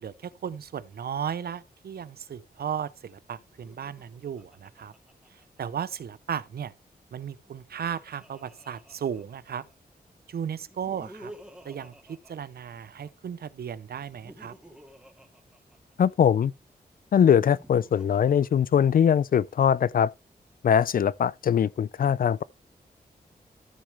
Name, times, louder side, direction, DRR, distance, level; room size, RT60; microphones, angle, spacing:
voice 1, 0.0-4.9 5.6-6.7 7.1-9.6 10.3-11.3 11.6-14.5, right 8 dB, 75° right, 0.7 m, -35 dB
Laughter, 3.5-6.0 7.3-9.7 10.6-13.1 13.9-16.4 17.2-19.2, right 1 dB, 5° right, 2.4 m, -51 dB
voice 2, 16.0-16.5 17.1-20.1 20.6-22.4, left 8 dB, 60° left, 0.4 m, -21 dB
14.0 x 6.2 x 3.4 m
wide cardioid pair, 135°, 16 cm